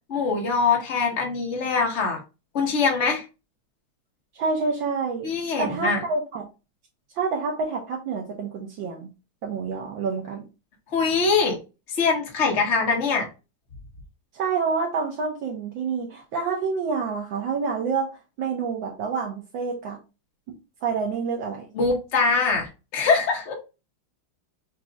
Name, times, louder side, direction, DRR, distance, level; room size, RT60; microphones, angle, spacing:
voice 1, 0.1-2.2 2.5-3.2 5.2-6.0 10.9-11.6 11.9-13.3 21.7-23.5, left 4 dB, 40° left, 0 dB, 1.4 m, -23 dB
voice 2, 4.3-5.3 5.6-6.4 7.1-9.1 9.4-10.4 14.3-18.1 18.4-20.0 20.8-21.7, right 5 dB, 70° right, 0 dB, 1.5 m, -27 dB
6.0 x 2.9 x 2.3 m, 0.28 s
omnidirectional pair, 2.3 m